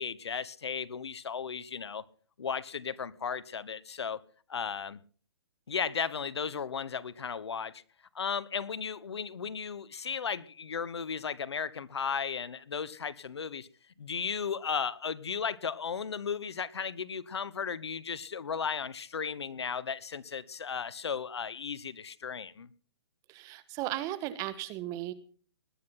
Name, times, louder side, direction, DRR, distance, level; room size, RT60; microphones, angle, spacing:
voice 1, 0.0-2.0 2.4-4.2 4.5-5.0 5.7-7.8 8.1-13.7 14.0-22.7, left 6 dB, 80° left, 1.2 m, -35 dB
voice 2, 23.3-25.1, right 14 dB, 25° right, 1.4 m, -36 dB
20.5 x 10.0 x 5.7 m
hypercardioid pair, 145°, 14 cm